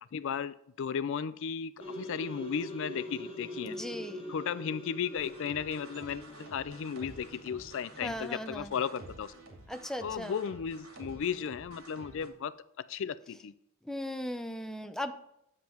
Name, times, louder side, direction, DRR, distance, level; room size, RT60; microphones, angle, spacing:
voice 1, 0.1-3.8 4.3-9.3 10.0-13.5, left 7 dB, 65° left, 16 dB, 0.4 m, -35 dB
sound 1, 1.8-8.9, equal, 25° left, 1.5 m, -44 dB
voice 2, 3.6-4.2 8.0-8.7 9.7-10.4 13.8-15.1, left 1 dB, 5° left, 7 dB, 0.5 m, -37 dB
sound 2, 5.2-12.3, right 2 dB, 85° right, 2.5 m, -51 dB
9.4 x 7.4 x 4.4 m, 0.77 s
head